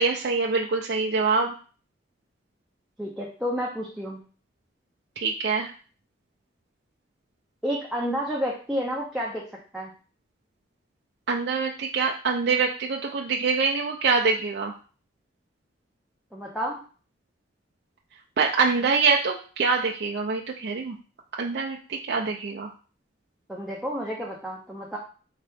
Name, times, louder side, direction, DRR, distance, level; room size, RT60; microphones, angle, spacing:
voice 1, 0.0-1.5 5.2-5.7 11.3-14.7 18.4-21.0 21.4-22.7, right 4 dB, 60° right, -1 dB, 0.4 m, -25 dB
voice 2, 3.0-4.2 7.6-9.5 9.7-9.9 16.3-16.8 23.5-25.0, equal, ahead, -4 dB, 0.5 m, -30 dB
4.4 x 2.8 x 3.4 m, 0.38 s
head